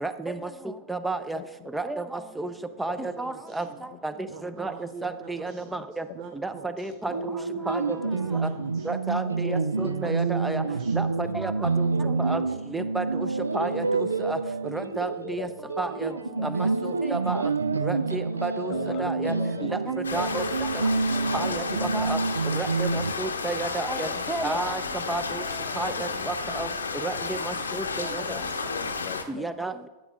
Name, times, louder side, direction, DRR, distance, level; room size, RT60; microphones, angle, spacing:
voice 1, 0.0-0.4 0.9-1.4 1.7-2.0 2.4-2.5 2.8-3.6 4.0-4.1 4.4-4.7 5.0-6.0 6.4-7.1 7.7-7.8 8.9-10.6 10.9-11.5 11.8-11.9 12.2-12.4 12.7-13.3 13.5-14.4 14.7-15.5 15.8-16.1 16.4-17.4 17.8-18.7 19.0-19.3 19.6-20.4 21.3-21.6 21.9-22.2 22.6-24.8 25.1-25.4 25.8-26.7 27.0-28.2 29.3-29.7, right 2 dB, 5° right, 11 dB, 0.6 m, -31 dB
voice 2, 1.3-1.7 2.8-3.0 3.8-4.0 7.1-7.3 8.0-8.1 9.6-9.7 10.6-10.8 13.4-13.7 14.1-14.4 15.2-15.5 16.1-16.5 18.6-19.7 21.3-21.6 21.9-22.0 24.0-24.3 25.1-25.2 25.8-26.0 27.8-27.9 28.3-29.5, left 14 dB, 40° left, 10 dB, 0.3 m, -41 dB
voice 3, 3.0-3.8 4.3-5.8 6.1-9.0 9.4-11.7, right 6 dB, 40° right, 6 dB, 0.8 m, -43 dB
sound 1, 7.1-23.1, right 4 dB, 75° right, 0.4 m, -28 dB
sound 2, 20.0-29.2, left 4 dB, 75° left, 0.8 m, -32 dB
12.0 x 7.9 x 3.6 m, 1.1 s
figure-of-eight pair, 90°, 0 cm